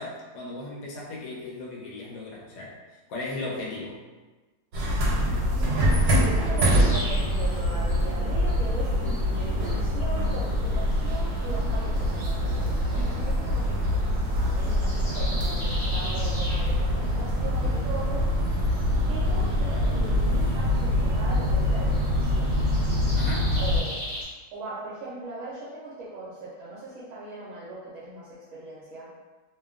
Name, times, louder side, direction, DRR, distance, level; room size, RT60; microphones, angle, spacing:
voice 1, 0.0-2.8 3.1-4.0 13.1-13.2 23.1-23.6, left 2 dB, 70° left, -4 dB, 1.0 m, -36 dB
sound 1, 4.7-23.8, equal, 90° right, 1.2 m, -24 dB
voice 2, 5.5-18.3 19.1-22.6 23.5-24.0 24.5-29.1, right 2 dB, 65° right, -8 dB, 0.9 m, -39 dB
sound 2, 6.6-24.2, equal, 40° left, 0.7 m, -42 dB
2.9 x 2.2 x 2.3 m, 1.2 s
omnidirectional pair, 1.7 m